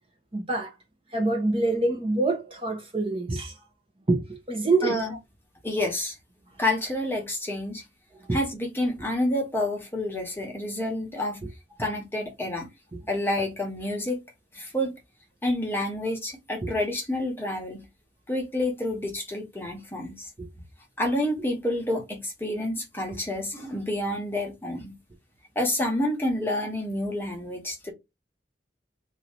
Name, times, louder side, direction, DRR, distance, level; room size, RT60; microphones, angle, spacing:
voice 1, 0.3-0.7 1.1-3.5 4.1-5.0 8.3-8.4 16.6-16.7 20.4-20.5, right 2 dB, 30° right, 1.0 m, -26 dB
voice 2, 4.8-5.2 5.6-6.2 6.6-7.8 8.3-11.4 11.8-12.7 13.1-14.2 14.5-14.9 15.4-17.9 18.3-20.3 21.0-25.0 25.5-27.9, left 1 dB, 15° left, 1.3 m, -29 dB
3.0 x 2.8 x 3.8 m
head